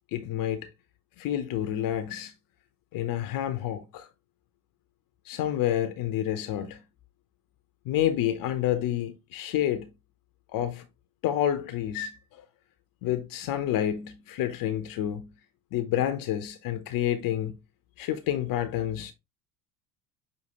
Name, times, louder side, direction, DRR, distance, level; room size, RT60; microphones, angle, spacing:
voice 1, 0.1-0.7 1.2-2.3 2.9-4.1 5.3-6.8 7.9-9.9 10.5-10.8 11.2-12.5 13.0-15.3 15.7-17.5 18.0-19.1, left 11 dB, 45° left, 0.7 m, -29 dB
6.3 x 2.7 x 2.9 m
hypercardioid pair, 70°, 47 cm